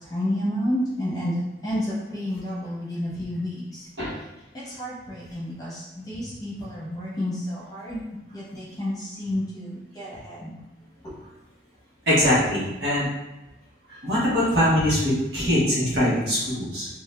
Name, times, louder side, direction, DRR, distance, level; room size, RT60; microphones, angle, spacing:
voice 1, 0.0-4.3 4.5-8.0 8.3-10.5 11.0-11.2, left 1 dB, 20° left, -8 dB, 1.0 m, -30 dB
voice 2, 12.1-13.0 14.0-16.9, equal, 65° right, -7 dB, 1.2 m, -22 dB
2.7 x 2.4 x 3.2 m, 1.0 s
head